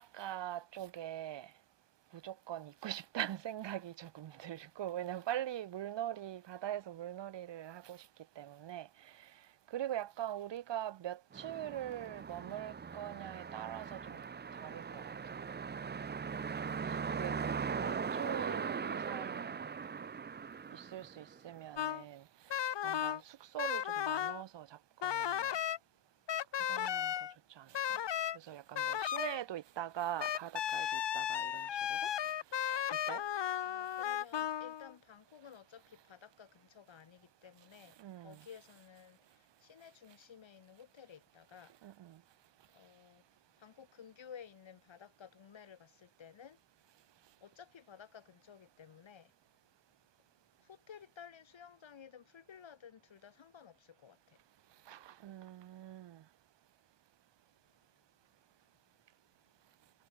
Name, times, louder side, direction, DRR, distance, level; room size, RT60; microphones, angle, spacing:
voice 1, 0.0-1.5 2.1-8.1 8.4-9.3 9.7-14.2 14.5-15.1 16.9-17.4 17.8-19.6 20.7-22.2 22.5-25.6 26.7-27.1 27.6-28.0 28.3-32.3 32.6-33.2 38.0-38.5 41.8-42.2 54.9-56.2, right 12 dB, 70° right, 0.7 m, -43 dB
sound 1, 11.3-21.6, right 6 dB, 25° right, 0.4 m, -40 dB
sound 2, 21.8-22.0 22.5-23.2 23.6-24.4 25.0-25.8 26.3-27.3 27.7-28.4 28.8-29.4 30.2-34.9, left 10 dB, 65° left, 0.9 m, -35 dB
voice 2, 33.6-37.9 38.2-39.2 39.6-41.7 42.7-43.2 43.6-46.6 47.4-49.3 50.6-54.2, left 7 dB, 90° left, 6.3 m, -55 dB
cardioid pair, 60°, 44 cm